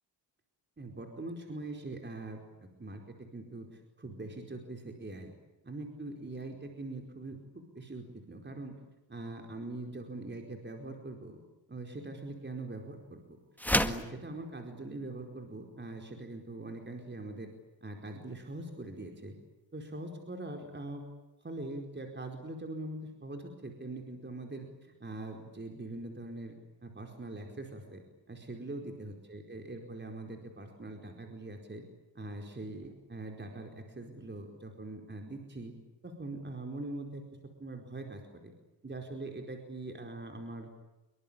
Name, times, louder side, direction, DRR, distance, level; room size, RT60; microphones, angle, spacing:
voice 1, 0.8-2.4 2.8-5.3 5.6-8.7 9.1-11.4 11.7-13.4 13.7-17.5 17.8-19.3 19.7-21.0 21.4-26.5 26.8-28.0 28.3-31.8 32.1-35.7 36.0-37.2 37.6-38.5 38.8-40.7, right 2 dB, 25° right, 3 dB, 4.7 m, -42 dB
sound 1, 13.6-14.1, left 1 dB, 5° left, 1.9 m, -28 dB
27.0 x 24.5 x 8.9 m, 1.0 s
cardioid pair, 100°, 44 cm